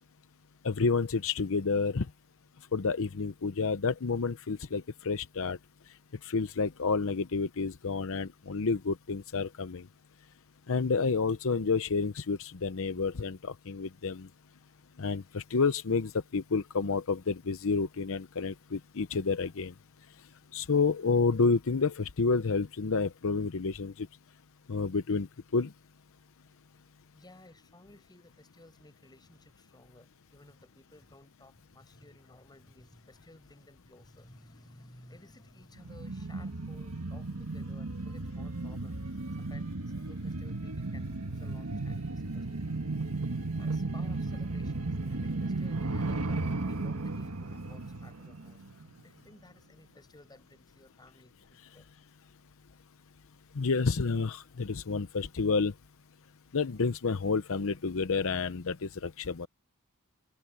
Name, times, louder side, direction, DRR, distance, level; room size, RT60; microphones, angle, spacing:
voice 1, 0.6-2.1 2.7-5.6 6.2-9.8 10.7-14.3 15.0-19.7 20.5-24.1 24.7-25.7 53.5-55.7 56.5-59.5, left 4 dB, 65° left, 0.7 m, -29 dB
voice 2, 27.1-39.0 39.4-42.7 43.6-48.6 49.0-51.9, left 1 dB, 20° left, 7.8 m, -57 dB
sound 1, 35.8-49.0 49.3-49.4, right 3 dB, 85° right, 1.6 m, -35 dB
head